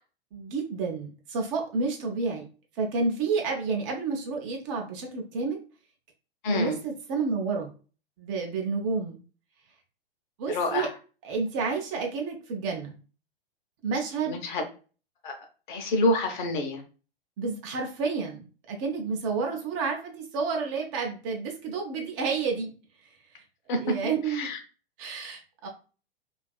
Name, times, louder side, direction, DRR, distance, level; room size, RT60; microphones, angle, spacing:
voice 1, 0.3-2.4 2.8-5.6 6.5-7.7 8.2-9.2 10.4-10.9 11.2-13.0 13.8-14.4 17.4-22.7 23.0-23.4 23.8-24.5 25.0-25.7, right 4 dB, 30° right, 1 dB, 0.5 m, -30 dB
voice 2, 6.4-6.8 10.5-10.9 14.3-14.6 15.2-15.3 15.7-16.8 23.7-23.8 24.3-24.6, left 2 dB, 50° left, 4 dB, 0.7 m, -27 dB
2.6 x 2.4 x 2.2 m, 0.36 s
figure-of-eight pair, 105°, 31 cm